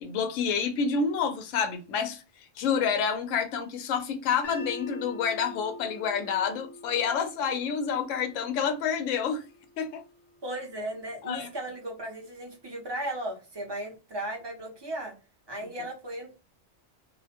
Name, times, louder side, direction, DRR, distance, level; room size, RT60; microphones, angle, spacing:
voice 1, 0.0-2.2 2.6-9.4 9.8-10.0 11.2-11.5, left 6 dB, 80° left, 0.9 m, -28 dB
sound 1, 4.4-10.6, left 1 dB, 40° left, 0.3 m, -45 dB
voice 2, 10.4-15.1 15.5-16.4, right 1 dB, 30° right, 0.6 m, -36 dB
2.5 x 2.1 x 2.7 m
omnidirectional pair, 1.3 m